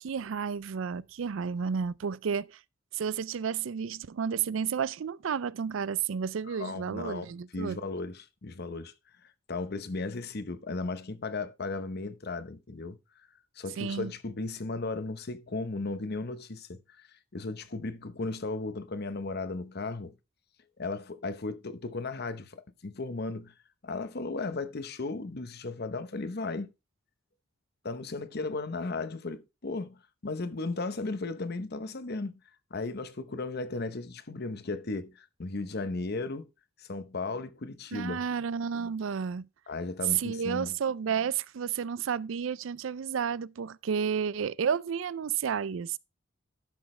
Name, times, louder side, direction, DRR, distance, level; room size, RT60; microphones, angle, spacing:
voice 1, 0.0-2.6 2.9-7.8 13.8-14.1 37.9-39.5 40.1-46.0, right 7 dB, 75° right, 0.4 m, -31 dB
voice 2, 6.5-8.9 9.2-13.0 13.6-17.1 17.3-20.1 20.8-23.5 23.8-26.7 27.8-32.4 32.7-36.5 36.8-38.2 39.7-40.7, left 3 dB, 55° left, 0.9 m, -35 dB
11.5 x 6.3 x 3.2 m
head